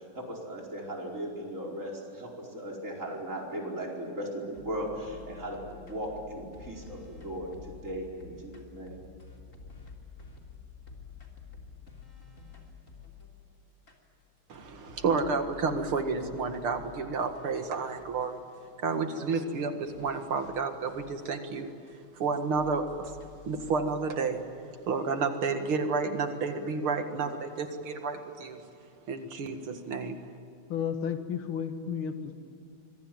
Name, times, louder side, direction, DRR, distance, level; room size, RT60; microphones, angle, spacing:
voice 1, 0.2-8.9, right 1 dB, 35° right, -1 dB, 5.2 m, -37 dB
sound 1, 4.5-13.4 13.9-14.0 14.5-18.9 19.2-19.3 19.5-19.6 19.9-22.3 22.5-24.3, left 5 dB, 35° left, 3.5 m, -50 dB
voice 2, 14.5-18.4 18.8-21.7 22.1-22.9 23.5-24.4 24.9-28.6 29.1-30.2, right 4 dB, 75° right, 6 dB, 2.7 m, -30 dB
voice 3, 30.7-32.4, left 7 dB, 70° left, 7 dB, 2.4 m, -33 dB
26.0 x 23.0 x 9.4 m, 2.5 s
omnidirectional pair, 2.4 m